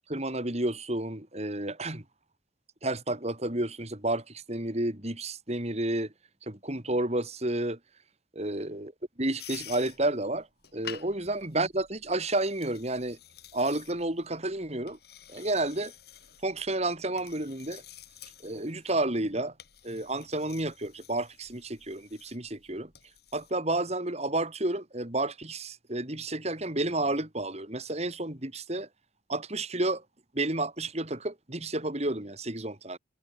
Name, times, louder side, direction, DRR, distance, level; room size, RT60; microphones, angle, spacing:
voice 1, 0.1-2.0 2.8-6.1 6.5-7.8 8.3-8.9 9.2-10.5 10.7-13.2 13.5-15.0 15.3-15.9 16.4-17.8 18.4-19.5 19.8-22.9 23.3-28.9 29.3-30.0 30.3-33.0, right 2 dB, 35° right, 3.0 m, -31 dB
sound 1, 9.4-23.5, left 9 dB, 55° left, 7.7 m, -50 dB
head